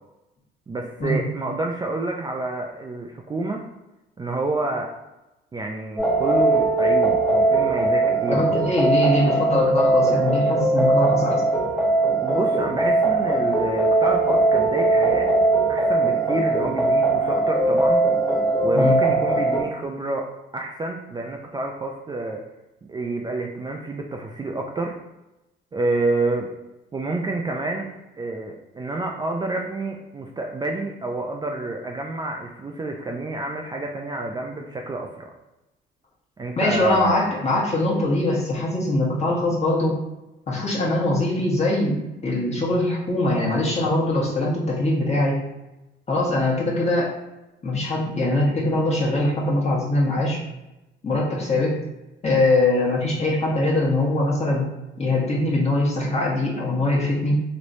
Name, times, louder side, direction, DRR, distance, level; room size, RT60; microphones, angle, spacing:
voice 1, 0.7-3.6 4.2-4.9 5.5-8.6 12.2-15.3 15.7-18.0 18.6-20.3 20.5-22.4 22.9-25.0 25.7-26.5 26.9-27.9 28.2-35.3 36.4-37.2, right 2 dB, 20° right, 1 dB, 0.3 m, -28 dB
sound 1, 6.0-19.6, right 2 dB, 5° left, 1.2 m, -20 dB
voice 2, 8.3-11.4 18.7-18.9 36.6-40.0 40.5-42.0 42.2-45.4 46.1-47.1 47.6-50.4 51.0-51.8 52.2-54.6 55.0-57.5, left 2 dB, 35° left, -4 dB, 1.2 m, -22 dB
3.1 x 2.9 x 2.6 m, 0.97 s
cardioid pair, 90°, 20 cm